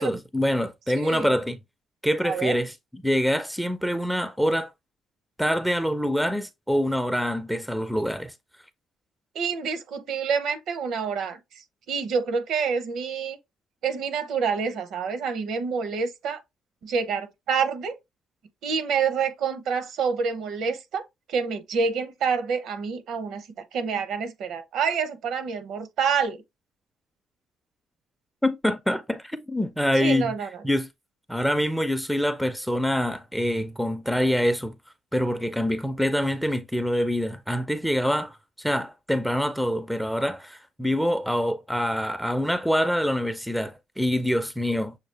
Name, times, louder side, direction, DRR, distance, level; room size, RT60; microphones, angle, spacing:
voice 1, 0.0-1.6 2.0-4.7 5.4-8.3 28.4-30.3 30.6-30.9 31.3-34.8 35.1-45.0, equal, ahead, 0.5 m, -25 dB
voice 2, 0.9-1.3 2.2-2.6 9.3-11.4 11.9-13.4 13.8-16.4 16.8-18.0 18.6-21.0 21.3-23.5 23.7-26.4 30.0-30.5, right 6 dB, 70° right, 0.8 m, -27 dB
6.4 x 2.3 x 3.3 m
cardioid pair, 120°, 0 cm